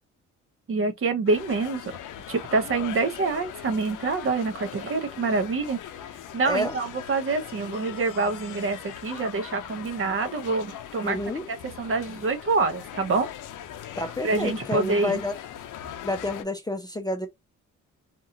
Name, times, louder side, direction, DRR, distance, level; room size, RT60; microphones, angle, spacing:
voice 1, 0.7-1.9 2.3-5.8 6.3-11.2 11.5-13.3 14.2-15.2, right 3 dB, 45° right, 0.8 m, -26 dB
sound 1, 1.3-16.4, left 10 dB, 75° left, 0.6 m, -40 dB
voice 2, 6.4-6.8 11.0-11.5 14.0-15.4 16.0-17.3, left 1 dB, 15° left, 0.5 m, -29 dB
2.9 x 2.3 x 2.7 m
cardioid pair, 95°, 31 cm